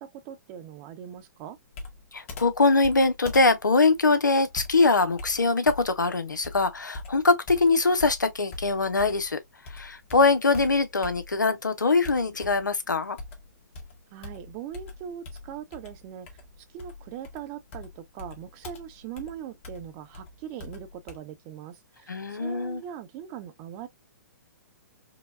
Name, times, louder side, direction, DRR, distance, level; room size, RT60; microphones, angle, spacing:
voice 1, 0.0-1.6 14.1-23.9, right 9 dB, 35° right, 0.8 m, -41 dB
Computer keyboard, 1.7-9.3 9.7-11.6 12.0-12.8 13.2-21.2, left 2 dB, 45° left, 1.3 m, -42 dB
voice 2, 2.1-9.4 9.7-13.2 22.1-22.8, left 3 dB, 85° left, 0.7 m, -23 dB
4.9 x 2.2 x 2.3 m
figure-of-eight pair, 120°, 10 cm